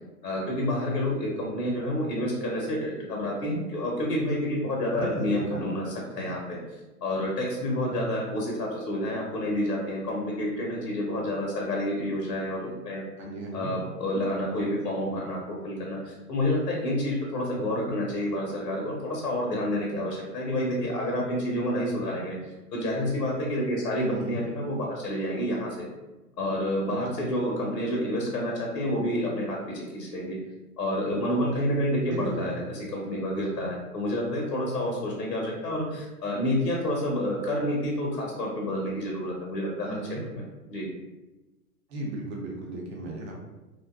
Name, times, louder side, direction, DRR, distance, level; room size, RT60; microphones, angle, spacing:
voice 1, 0.2-6.6 7.0-13.0 13.5-22.3 22.7-25.9 26.4-30.4 30.8-40.0 40.3-40.4 40.7-40.9, left 1 dB, 80° left, -1 dB, 0.7 m, -29 dB
voice 2, 4.9-5.6 13.2-13.7 24.0-24.4 32.1-32.7 39.8-40.2 41.9-43.4, right 1 dB, 45° right, -1 dB, 0.7 m, -35 dB
2.5 x 2.1 x 2.2 m, 1.1 s
figure-of-eight pair, 110°, 48 cm